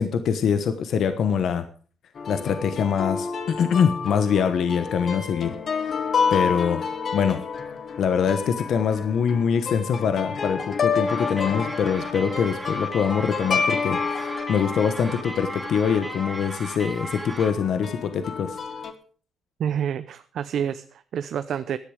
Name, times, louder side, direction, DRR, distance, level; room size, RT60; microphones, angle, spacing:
voice 1, 0.0-1.7 2.3-5.6 5.8-5.9 6.3-6.8 7.1-7.4 8.0-18.6, left 7 dB, 65° left, 9 dB, 1.1 m, -24 dB
sound 1, 2.2-16.5 17.4-18.9, left 5 dB, 50° left, 1.8 m, -29 dB
sound 2, 11.1-17.5, right 1 dB, 5° right, 3.0 m, -36 dB
voice 2, 19.6-21.8, right 8 dB, 70° right, 11 dB, 0.6 m, -28 dB
15.5 x 10.5 x 5.0 m, 0.42 s
cardioid pair, 90°, 0 cm